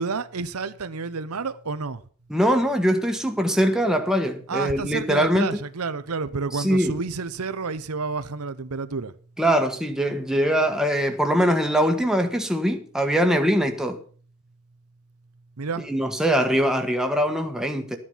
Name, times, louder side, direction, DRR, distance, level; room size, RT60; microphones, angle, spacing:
voice 1, 0.0-2.0 4.5-9.1 15.6-15.9, right 4 dB, 80° right, 0.8 m, -30 dB
voice 2, 2.3-5.6 6.5-7.0 9.4-14.0 15.9-18.0, equal, 5° right, 1.4 m, -22 dB
13.0 x 9.8 x 5.7 m
head